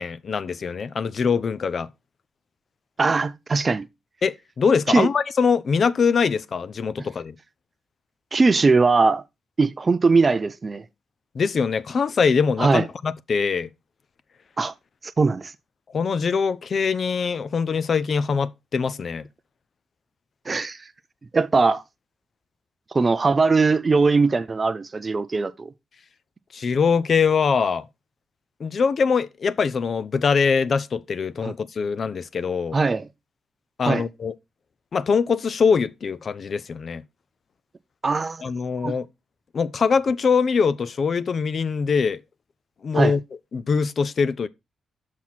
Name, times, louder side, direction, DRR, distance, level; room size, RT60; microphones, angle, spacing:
voice 1, 0.0-1.9 4.2-7.4 11.3-13.7 15.9-19.3 26.5-27.8 28.6-32.8 33.8-34.3 34.9-37.0 38.4-39.1 39.5-42.2 42.8-43.2 43.5-44.5, left 5 dB, 50° left, 0.4 m, -23 dB
voice 2, 3.0-3.9 4.9-5.1 8.3-9.2 9.6-10.8 12.6-12.8 14.6-14.7 15.2-15.5 20.5-20.8 21.3-21.8 22.9-25.7 31.4-31.5 32.7-33.1 33.8-34.0 38.0-38.4 38.8-39.0 42.9-43.1, right 4 dB, 30° right, 0.4 m, -20 dB
6.1 x 5.8 x 4.2 m
cardioid pair, 105°, 0 cm